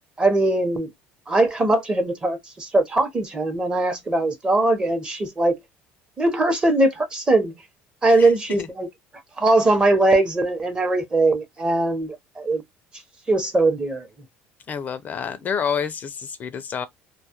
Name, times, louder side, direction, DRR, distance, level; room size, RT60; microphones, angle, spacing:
voice 1, 0.2-0.9 1.3-5.6 6.2-7.6 8.0-8.9 9.4-12.6 13.3-14.1, right 2 dB, 20° right, 0.7 m, -20 dB
voice 2, 14.7-16.9, left 7 dB, 35° left, 0.4 m, -28 dB
2.2 x 2.0 x 2.8 m
supercardioid pair, 110°, 5 cm